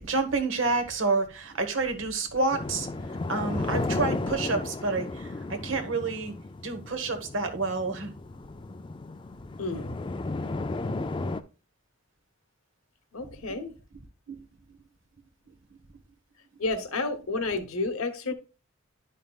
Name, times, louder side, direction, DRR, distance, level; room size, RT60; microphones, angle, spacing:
voice 1, 0.0-2.9 3.3-6.3 6.6-8.1 13.2-13.3 14.3-14.4, right 3 dB, 65° right, 1.2 m, -29 dB
sound 1, 2.5-11.4, left 2 dB, 25° left, 0.3 m, -34 dB
voice 2, 9.6-10.1 10.4-10.7 13.1-13.7 16.6-18.3, left 3 dB, 90° left, 0.9 m, -31 dB
10.5 x 5.5 x 2.3 m
head